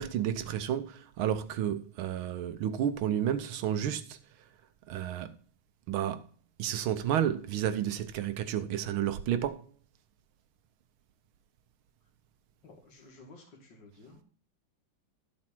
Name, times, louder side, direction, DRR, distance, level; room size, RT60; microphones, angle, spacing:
voice 1, 0.0-4.2 4.9-5.3 5.9-6.3 6.6-9.7, right 10 dB, 80° right, 1.6 m, -31 dB
voice 2, 12.6-14.2, left 2 dB, 60° left, 3.0 m, -54 dB
13.0 x 4.3 x 5.9 m
omnidirectional pair, 2.3 m